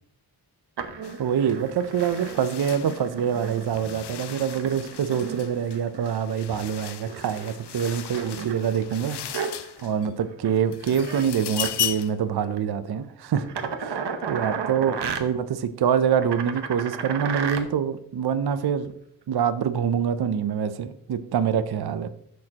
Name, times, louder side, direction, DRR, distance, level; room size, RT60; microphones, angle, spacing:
sound 1, 0.8-6.7 7.0-10.0 10.3-10.5 10.8-11.3 11.5-11.7 12.4-12.6 13.4-15.2 16.2-17.6 18.8-18.9, right 6 dB, 90° right, 1.0 m, -34 dB
sound 2, 1.0-1.2 1.5-10.1 10.5-12.2, left 10 dB, 75° left, 0.6 m, -36 dB
voice 1, 1.2-9.2 9.5-13.5 13.8-18.9 19.3-22.1, right 8 dB, 70° right, 11 dB, 0.6 m, -25 dB
10.0 x 6.5 x 2.9 m, 0.68 s
wide cardioid pair, 140°, 40 cm